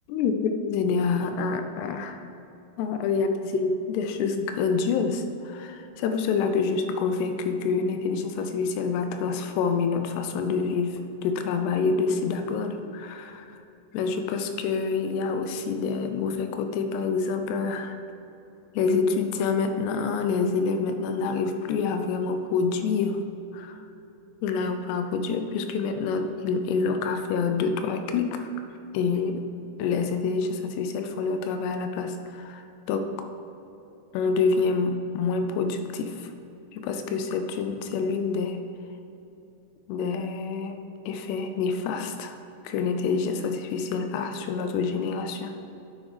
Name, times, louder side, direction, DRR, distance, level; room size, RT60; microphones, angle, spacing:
voice 1, 0.1-2.2 2.8-13.5 13.9-18.0 18.8-23.2 23.5-23.8 24.4-28.5 28.9-29.5 29.8-33.1 34.1-36.3 36.7-38.6 39.9-40.8 41.1-42.4 42.6-45.5, left 5 dB, 90° left, 7 dB, 2.8 m, -27 dB
9.7 x 6.3 x 5.0 m, 2.9 s
omnidirectional pair, 4.7 m